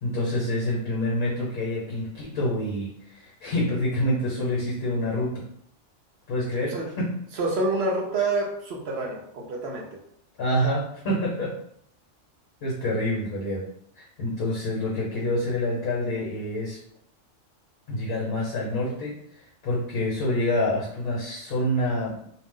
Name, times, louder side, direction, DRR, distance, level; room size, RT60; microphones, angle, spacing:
voice 1, 0.0-5.5 6.3-7.1 10.4-11.6 12.6-13.7 14.0-16.8 17.9-22.2, left 1 dB, 55° left, -5 dB, 1.0 m, -27 dB
voice 2, 7.4-10.0, right 2 dB, 60° right, -1 dB, 0.8 m, -27 dB
2.6 x 2.0 x 3.6 m, 0.70 s
omnidirectional pair, 1.3 m